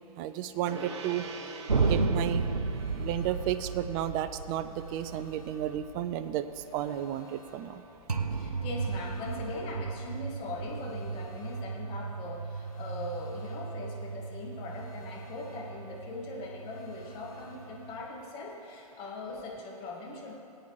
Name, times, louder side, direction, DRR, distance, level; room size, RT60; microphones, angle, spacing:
voice 1, 0.2-1.2 1.9-2.4 3.0-7.8, right 11 dB, 20° right, 12 dB, 0.4 m, -33 dB
Gong, 0.7-10.4, right 4 dB, 45° right, 0.9 m, -48 dB
sound 1, 1.4-18.1, left 2 dB, 65° left, 2.0 m, -59 dB
sound 2, 1.7-6.8 8.1-18.1, right 4 dB, 85° right, 0.6 m, -35 dB
voice 2, 7.8-20.4, left 2 dB, 30° left, -2 dB, 1.8 m, -41 dB
19.0 x 8.7 x 3.2 m, 2.9 s
figure-of-eight pair, 115°, 19 cm